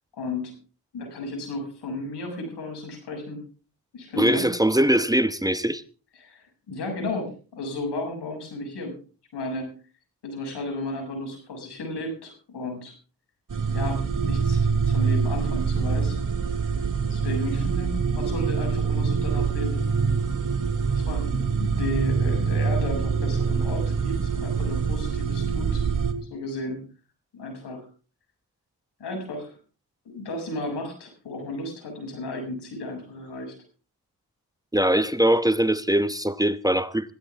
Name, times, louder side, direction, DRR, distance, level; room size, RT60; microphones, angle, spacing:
voice 1, 0.1-0.5 0.9-3.4 3.9-4.5 6.2-8.9 9.3-9.7 10.2-12.9 13.7-16.2 17.1-19.8 20.9-25.9 26.3-26.8 27.3-27.9 29.0-29.5 30.0-33.5, left 2 dB, 90° left, 7.3 m, -33 dB
voice 2, 4.2-5.8 34.7-37.1, right 1 dB, 10° right, 1.0 m, -22 dB
sound 1, 13.5-26.1, right 5 dB, 50° right, 2.9 m, -25 dB
21.0 x 15.5 x 3.6 m
cardioid pair, 65°, 39 cm